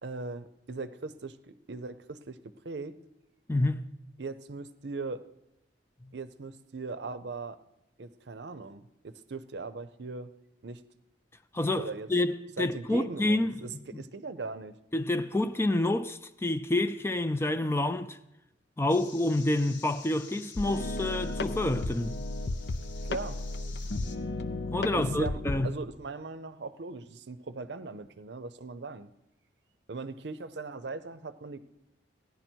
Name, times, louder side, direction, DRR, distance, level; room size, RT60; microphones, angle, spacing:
voice 1, 0.0-3.0 4.2-5.2 6.1-7.6 8.0-10.3 10.6-10.8 11.8-12.1 12.6-14.7 23.1-23.4 24.9-29.1 29.9-31.6, right 3 dB, 65° right, 0.6 m, -39 dB
voice 2, 3.5-3.9 6.0-6.1 11.5-14.0 14.9-18.2 18.8-22.2 24.7-25.8, left 2 dB, 15° left, 0.4 m, -28 dB
sound 1, 18.9-24.2, left 6 dB, 80° left, 1.1 m, -50 dB
sound 2, 20.6-25.7, left 2 dB, 65° left, 0.6 m, -34 dB
15.5 x 10.5 x 4.5 m
head